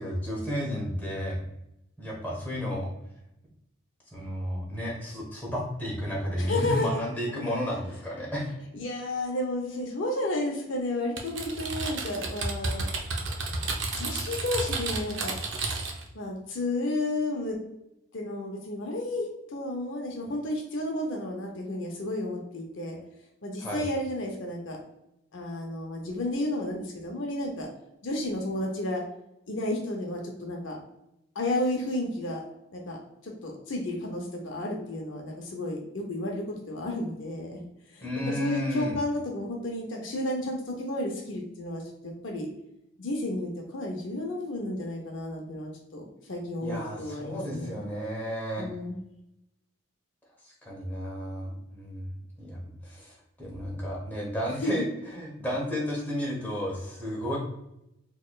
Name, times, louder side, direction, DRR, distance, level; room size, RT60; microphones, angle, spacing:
voice 1, 0.0-1.4 2.0-2.9 4.1-8.5 23.6-23.8 38.0-39.0 46.6-48.7 50.4-52.1 52.4-57.4, equal, 10° left, -5 dB, 1.0 m, -32 dB
voice 2, 6.4-7.0 7.5-7.6 8.7-12.9 13.5-13.7 14.0-15.3 16.1-17.6 18.1-23.0 23.4-24.8 25.3-27.7 28.0-29.0 29.5-30.8 31.3-32.4 32.7-33.0 33.2-37.6 37.9-42.5 43.0-46.0 46.3-47.8 48.6-49.0 54.6-54.7, left 1 dB, 60° left, 0 dB, 0.6 m, -32 dB
Typing, 11.2-16.1, right 3 dB, 55° right, 0.6 m, -31 dB
4.1 x 3.0 x 2.3 m, 0.84 s
head